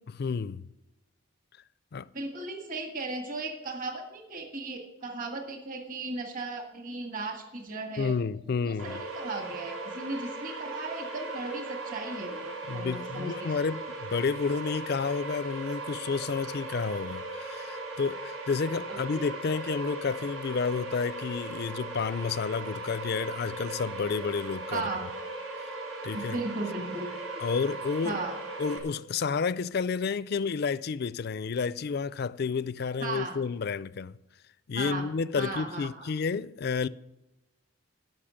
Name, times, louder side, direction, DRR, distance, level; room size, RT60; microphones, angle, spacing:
voice 1, 0.1-0.6 1.9-2.1 8.0-9.0 12.7-24.9 26.0-26.4 27.4-28.2 28.6-34.2 34.7-36.9, left 5 dB, 50° left, 0.4 m, -30 dB
voice 2, 2.1-8.2 8.6-13.6 18.9-19.2 24.7-25.0 26.1-27.1 28.0-28.4 33.0-33.4 34.7-35.0 35.4-36.1, right 2 dB, 40° right, 1.8 m, -36 dB
sound 1, 8.8-28.8, right 2 dB, 80° right, 3.8 m, -38 dB
13.5 x 5.7 x 8.9 m
head